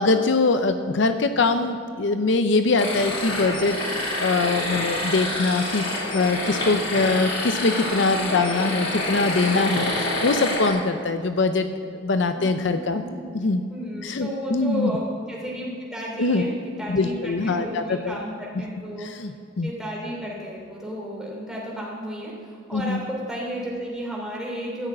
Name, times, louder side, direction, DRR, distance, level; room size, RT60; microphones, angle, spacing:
voice 1, 0.0-5.9 6.1-11.7 12.0-13.0 13.3-13.6 14.0-14.9 16.2-16.4 16.9-18.1 19.0-19.3 19.6-19.7 22.7-23.0, left 3 dB, 60° left, 8 dB, 0.5 m, -23 dB
sound 1, 2.8-10.7, left 1 dB, 85° left, 3.6 m, -27 dB
voice 2, 13.7-19.3 19.6-24.9, equal, 5° right, -4 dB, 2.8 m, -33 dB
13.0 x 6.5 x 8.7 m, 2.3 s
head